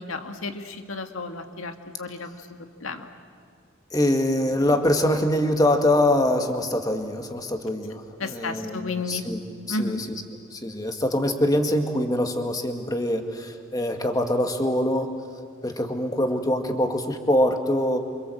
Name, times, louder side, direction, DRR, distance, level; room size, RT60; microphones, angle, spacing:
voice 1, 0.0-1.7 2.0-3.1 8.2-9.3 9.7-10.0, left 3 dB, 85° left, 6 dB, 1.9 m, -32 dB
voice 2, 3.9-9.4 9.7-10.2 10.5-15.1 15.6-18.0, left 1 dB, 20° left, 5 dB, 1.9 m, -24 dB
29.0 x 26.0 x 7.9 m, 2.3 s
head